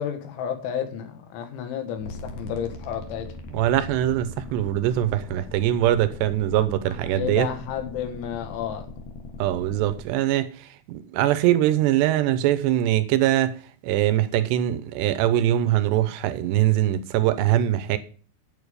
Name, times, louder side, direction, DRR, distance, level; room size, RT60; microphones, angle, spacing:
voice 1, 0.0-3.3 7.1-8.8, left 8 dB, 85° left, 3.8 m, -31 dB
sound 1, 2.0-10.0, left 3 dB, 60° left, 2.6 m, -40 dB
voice 2, 3.5-7.5 9.4-18.0, right 13 dB, 80° right, 2.7 m, -22 dB
9.4 x 8.6 x 5.0 m
omnidirectional pair, 5.3 m